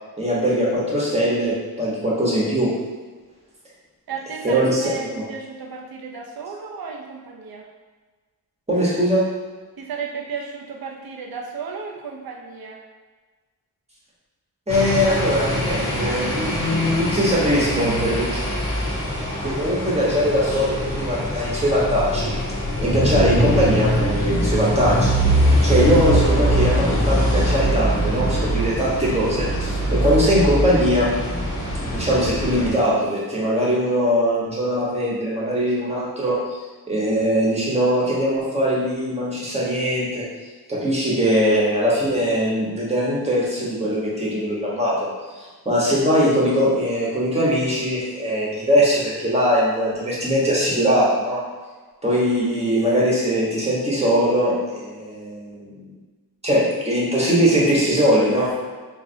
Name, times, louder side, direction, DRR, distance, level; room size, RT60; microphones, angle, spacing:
voice 1, 0.2-2.7 4.4-5.1 8.7-9.3 14.7-18.4 19.4-22.4 22.8-25.2 25.6-31.1 31.9-36.4 36.9-40.2 40.7-45.1 45.4-51.4 52.0-55.9 56.4-58.5, equal, 15° right, -6 dB, 1.2 m, -21 dB
voice 2, 4.1-7.6 9.8-12.8, right 5 dB, 75° right, 0 dB, 0.7 m, -34 dB
sound 1, 14.7-32.7, equal, 35° left, 0.9 m, -22 dB
3.9 x 2.8 x 2.7 m, 1.4 s
wide cardioid pair, 90°, 37 cm